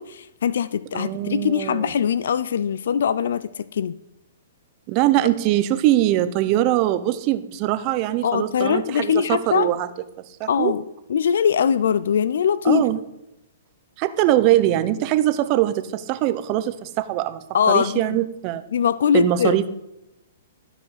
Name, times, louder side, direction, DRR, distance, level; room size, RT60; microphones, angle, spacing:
voice 1, 0.0-3.9 8.2-9.7 10.5-10.8 11.1-12.9 17.5-18.2 18.7-19.6, left 8 dB, 75° left, 0.3 m, -22 dB
voice 2, 0.9-1.9 4.9-9.9 10.4-10.7 12.6-13.0 14.0-18.6 19.1-19.7, right 14 dB, 35° right, 0.6 m, -22 dB
12.5 x 5.0 x 4.0 m
hypercardioid pair, 145°, 0 cm